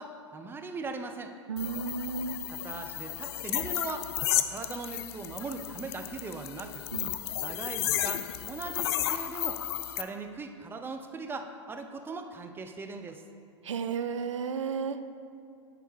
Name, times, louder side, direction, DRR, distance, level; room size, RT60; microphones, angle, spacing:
voice 1, 0.0-1.3 2.5-4.1 4.5-6.9 7.4-9.6 10.0-13.2, right 3 dB, 15° right, 6 dB, 0.5 m, -39 dB
voice 2, 1.5-2.4 6.9-7.1 13.6-15.1, right 6 dB, 75° right, 10 dB, 0.4 m, -33 dB
sound 1, 1.6-10.0, left 12 dB, 55° left, 0.4 m, -33 dB
9.6 x 3.4 x 4.7 m, 2.4 s
hypercardioid pair, 100°, 16 cm